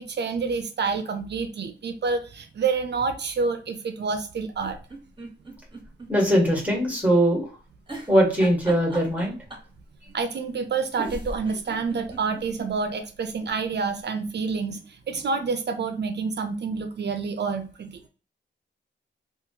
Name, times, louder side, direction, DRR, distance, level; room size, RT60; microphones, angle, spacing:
voice 1, 0.0-4.8 10.1-18.0, right 5 dB, 60° right, 7 dB, 0.5 m, -28 dB
sound 1, 4.5-6.4 6.8-6.9 7.9-9.7 10.6-10.7 11.0-12.7 13.1-13.2 13.4-13.5, right 1 dB, 25° right, 1.1 m, -38 dB
voice 2, 6.1-7.4 8.1-9.3, right 1 dB, 10° right, -2 dB, 1.4 m, -21 dB
2.8 x 2.3 x 2.8 m, 0.37 s
cardioid pair, 60°, 20 cm